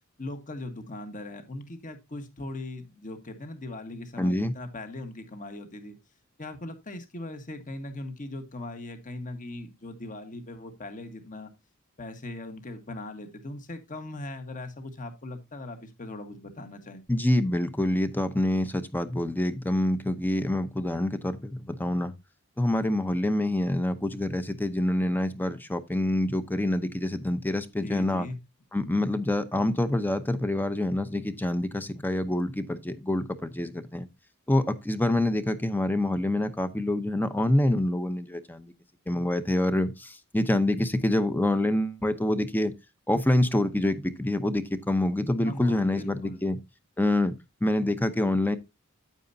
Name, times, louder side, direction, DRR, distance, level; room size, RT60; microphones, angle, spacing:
voice 1, 0.2-6.0 6.4-11.5 12.0-17.0 27.8-28.4 45.4-46.4, left 2 dB, 40° left, 1.5 m, -39 dB
voice 2, 4.2-4.5 17.1-22.1 22.6-28.3 28.7-34.1 34.5-38.7 39.1-42.7 43.1-46.6 47.0-47.3 47.6-48.6, left 1 dB, 10° left, 0.7 m, -26 dB
9.1 x 9.0 x 2.7 m
head